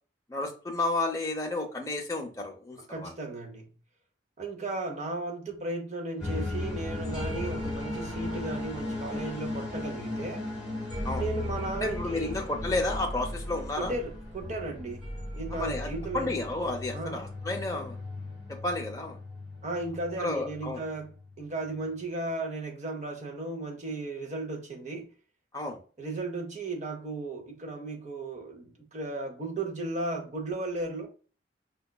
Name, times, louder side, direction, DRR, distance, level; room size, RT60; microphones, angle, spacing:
voice 1, 0.3-3.1 11.0-11.2 11.8-13.9 15.5-17.9 18.6-19.2 20.2-20.8 25.5-25.8, left 2 dB, 20° left, 0.5 m, -31 dB
voice 2, 2.9-3.7 4.4-10.5 11.2-12.4 13.8-15.1 15.3-16.4 16.9-17.2 19.6-25.1 26.0-31.1, right 2 dB, 40° right, 0.7 m, -35 dB
sound 1, 6.2-21.3, left 2 dB, 5° right, 1.1 m, -36 dB
5.0 x 2.3 x 2.2 m
head